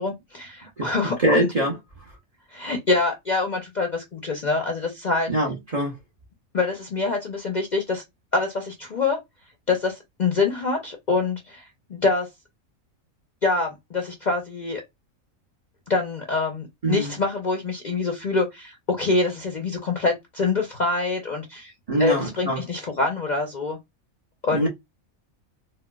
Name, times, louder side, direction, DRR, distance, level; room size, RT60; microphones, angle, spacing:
voice 1, 0.0-1.5 2.5-5.3 6.5-8.0 8.3-9.2 9.7-12.3 13.4-14.8 15.9-21.7 22.0-23.8 24.4-24.7, left 3 dB, 50° left, 0.5 m, -25 dB
voice 2, 1.2-1.8 5.3-6.0 16.8-17.2 21.9-22.6 24.5-24.7, right 1 dB, 35° right, 0.6 m, -23 dB
4.1 x 2.2 x 2.2 m
omnidirectional pair, 1.4 m